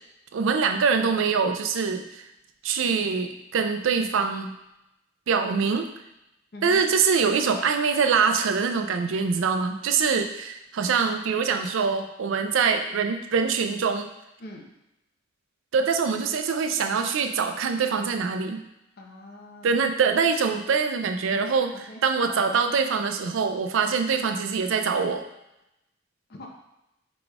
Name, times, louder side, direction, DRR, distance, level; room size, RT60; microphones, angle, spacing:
voice 1, 0.3-2.2 2.6-4.5 5.3-5.9 6.6-14.1 15.7-18.6 19.6-21.7 22.0-25.3, right 5 dB, 65° right, 6 dB, 0.4 m, -24 dB
voice 2, 6.5-6.8 11.0-11.2 14.4-14.7 19.0-19.9 21.7-22.0 26.3-26.5, left 1 dB, 50° left, 0 dB, 0.7 m, -43 dB
4.8 x 4.0 x 2.3 m, 0.89 s
head